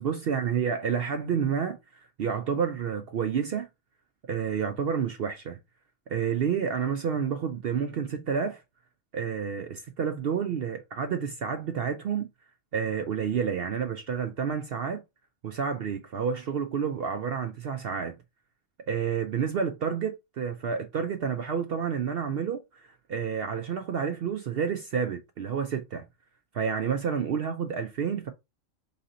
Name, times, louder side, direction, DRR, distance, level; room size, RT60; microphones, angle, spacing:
voice 1, 0.0-3.7 4.3-5.6 6.1-8.6 9.1-12.3 12.7-15.0 15.4-18.1 18.9-26.1 26.5-28.3, right 7 dB, 65° right, 0.6 m, -29 dB
4.0 x 2.8 x 3.8 m
omnidirectional pair, 1.4 m